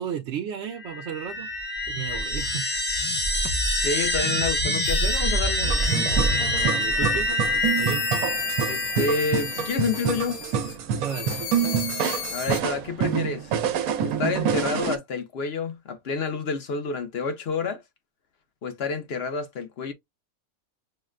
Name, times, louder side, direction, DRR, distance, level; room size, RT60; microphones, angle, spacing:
voice 1, 0.0-1.5 1.9-2.7 6.4-7.5 7.8-8.1 11.0-11.4, right 8 dB, 65° right, 0.8 m, -33 dB
sound 1, 0.8-10.0, left 1 dB, 15° left, 0.4 m, -26 dB
voice 2, 3.8-5.8 8.7-10.4 12.3-13.5 14.0-17.8 18.6-19.9, left 4 dB, 55° left, 0.8 m, -29 dB
sound 2, 4.8-5.3 5.8-6.3 6.8-10.8 11.0-12.6, left 11 dB, 80° left, 1.0 m, -36 dB
sound 3, 5.6-15.0, right 8 dB, 80° right, 1.1 m, -27 dB
6.3 x 2.1 x 2.3 m
omnidirectional pair, 1.5 m